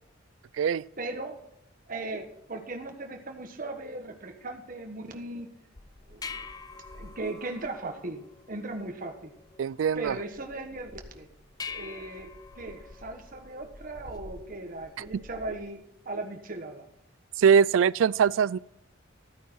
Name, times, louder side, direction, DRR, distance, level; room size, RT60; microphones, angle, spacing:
voice 1, 1.0-1.3 1.9-5.5 6.1-6.4 6.9-9.3 9.9-11.3 11.7-15.8 16.0-16.8, right 2 dB, 45° right, 1.3 m, -38 dB
sound 1, 5.8-15.7, left 4 dB, 20° left, 0.5 m, -46 dB
voice 2, 9.6-10.2 15.1-15.2 17.4-18.6, right 7 dB, 75° right, 0.3 m, -22 dB
13.5 x 9.3 x 4.6 m
head